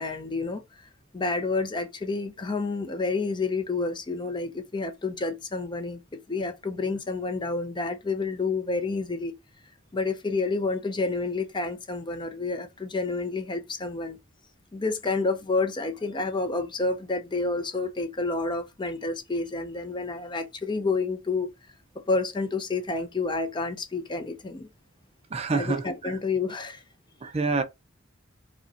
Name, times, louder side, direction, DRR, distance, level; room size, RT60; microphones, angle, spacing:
voice 1, 0.0-9.4 9.9-14.2 14.7-21.5 22.0-24.7 25.5-26.8, left 3 dB, 25° left, 0.5 m, -29 dB
voice 2, 25.3-25.8 27.2-27.6, right 4 dB, 30° right, 0.4 m, -26 dB
4.8 x 2.1 x 2.7 m
head